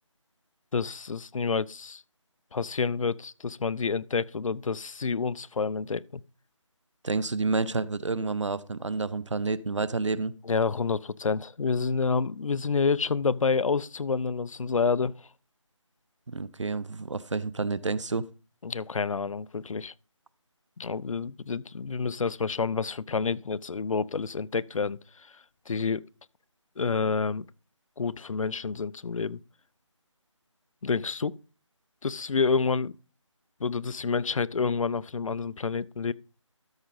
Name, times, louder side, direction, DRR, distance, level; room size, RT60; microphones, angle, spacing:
voice 1, 0.7-2.0 2.5-6.2 10.4-15.3 18.6-19.9 20.8-26.1 26.8-27.5 28.0-29.4 30.8-31.4 32.0-32.9 33.6-36.1, left 5 dB, 80° left, 0.5 m, -28 dB
voice 2, 7.0-10.3 16.3-18.3, right 3 dB, 65° right, 0.6 m, -29 dB
13.0 x 5.1 x 3.9 m
figure-of-eight pair, 180°, 17 cm